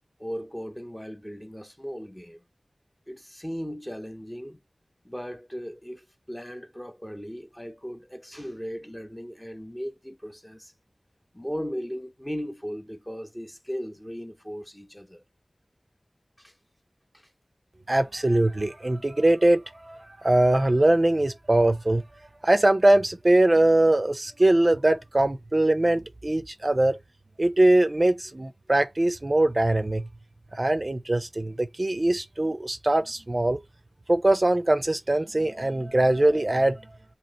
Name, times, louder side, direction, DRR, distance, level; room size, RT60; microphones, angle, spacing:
voice 1, 0.2-2.4 3.1-4.6 5.0-10.7 11.3-15.2 16.4-16.5 17.1-17.3, equal, 10° left, 0.7 m, -37 dB
voice 2, 17.9-22.0 22.4-27.0 27.4-30.0 30.5-33.6 34.1-36.9, right 1 dB, 40° right, 0.5 m, -22 dB
3.0 x 2.9 x 3.9 m
wide cardioid pair, 55°, 0 cm